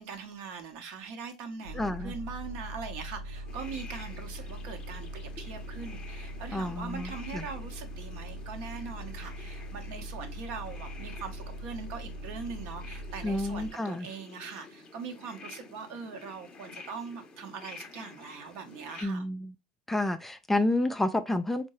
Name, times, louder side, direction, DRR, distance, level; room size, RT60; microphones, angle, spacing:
voice 1, 0.0-19.3, right 5 dB, 60° right, 0.8 m, -41 dB
Bus, 1.6-13.7, equal, 90° right, 0.7 m, -41 dB
voice 2, 1.7-2.1 6.5-7.4 13.2-14.1 19.0-19.5 19.9-21.7, left 1 dB, 10° left, 0.4 m, -30 dB
sound 1, 3.5-19.0, left 4 dB, 30° left, 0.8 m, -50 dB
4.4 x 2.1 x 3.0 m
hypercardioid pair, 80°, 3 cm